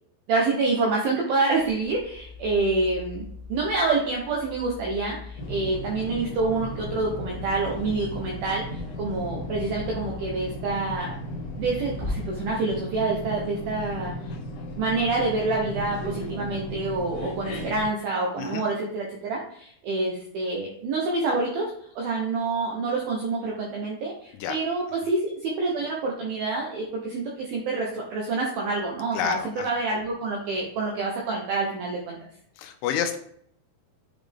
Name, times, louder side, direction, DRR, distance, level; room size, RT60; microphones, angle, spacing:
voice 1, 0.3-11.2 11.6-14.1 14.8-32.2, right 3 dB, 80° right, -2 dB, 2.1 m, -27 dB
sound 1, 1.5-12.1, left 3 dB, 45° right, 2.4 m, -42 dB
sound 2, 5.4-17.9, left 1 dB, 60° left, 2.7 m, -36 dB
voice 2, 29.1-29.7 32.6-33.2, left 9 dB, 85° left, 6 dB, 3.2 m, -29 dB
8.2 x 5.1 x 3.5 m, 0.66 s
omnidirectional pair, 5.7 m